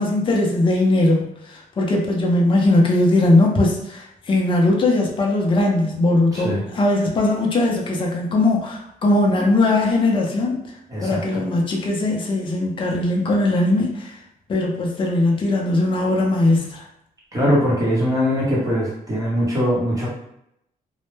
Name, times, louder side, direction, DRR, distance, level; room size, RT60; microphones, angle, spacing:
voice 1, 0.0-10.6 11.0-14.2 14.5-16.8, left 2 dB, 35° left, -1 dB, 0.5 m, -19 dB
voice 2, 6.3-6.6 10.9-11.4 17.3-20.1, equal, 25° right, -6 dB, 0.9 m, -21 dB
2.1 x 2.0 x 3.1 m, 0.77 s
wide cardioid pair, 160°, 15 cm